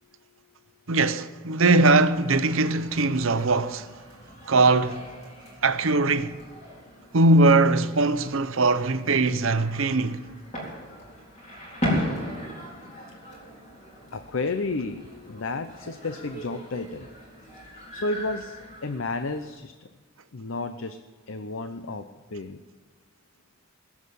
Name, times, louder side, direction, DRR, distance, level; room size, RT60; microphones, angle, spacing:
voice 1, 0.9-3.9 4.5-5.0 5.6-6.4 7.1-10.2, right 2 dB, 70° right, 0.8 m, -21 dB
sound 1, 2.1-19.5, equal, 35° left, 4.0 m, -38 dB
voice 2, 14.1-17.1 17.9-19.9 20.3-21.0 21.3-22.0 22.3-22.6, left 3 dB, 65° left, 0.7 m, -32 dB
20.0 x 7.4 x 8.4 m
head